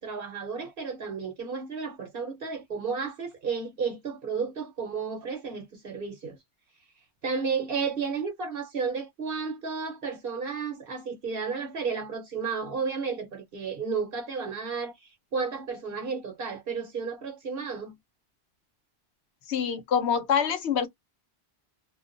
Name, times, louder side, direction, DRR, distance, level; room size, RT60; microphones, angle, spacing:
voice 1, 0.0-6.4 7.2-17.9, right 5 dB, 60° right, 1.0 m, -32 dB
voice 2, 19.5-20.9, left 7 dB, 80° left, 1.0 m, -25 dB
2.3 x 2.2 x 2.5 m
omnidirectional pair, 1.1 m